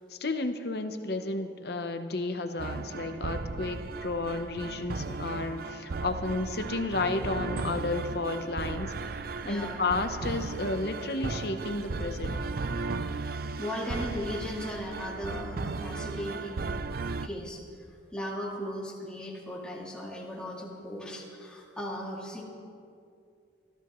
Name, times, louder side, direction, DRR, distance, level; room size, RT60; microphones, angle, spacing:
voice 1, 0.1-12.4, left 2 dB, 55° left, 8 dB, 0.9 m, -32 dB
sound 1, 2.6-17.3, right 3 dB, 50° right, 0.4 m, -36 dB
voice 2, 9.4-9.8 13.6-16.8 17.2-17.6 17.9-22.4, equal, 5° left, -5 dB, 2.4 m, -37 dB
26.0 x 14.0 x 3.1 m, 2.4 s
head